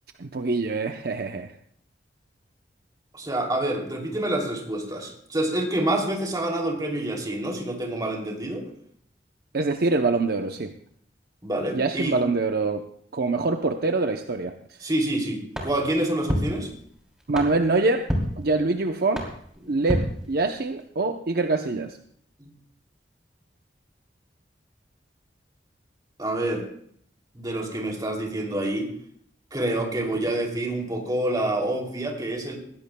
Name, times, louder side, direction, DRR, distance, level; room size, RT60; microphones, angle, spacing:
voice 1, 0.2-1.5 9.5-10.7 11.7-12.8 13.1-14.5 17.3-18.1 18.4-19.2 19.7-22.0, right 3 dB, 60° right, 6 dB, 0.7 m, -24 dB
voice 2, 3.1-8.6 11.4-12.1 14.8-16.7 19.6-19.7 22.4-22.5 26.2-26.6 27.3-28.9 29.5-32.6, right 1 dB, 25° right, 0 dB, 2.8 m, -27 dB
sound 1, 15.5-20.9, equal, 5° right, 3.1 m, -32 dB
21.0 x 16.0 x 2.2 m, 0.64 s
head